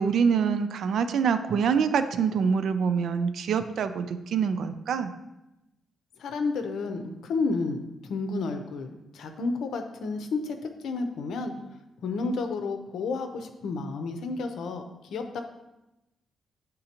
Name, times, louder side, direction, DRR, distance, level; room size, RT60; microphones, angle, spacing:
voice 1, 0.0-5.1, right 6 dB, 70° right, 10 dB, 0.4 m, -25 dB
voice 2, 6.2-11.5 12.0-14.8 15.1-15.4, left 3 dB, 80° left, 6 dB, 0.7 m, -31 dB
9.7 x 3.7 x 2.9 m, 0.95 s
cardioid pair, 125°, 0 cm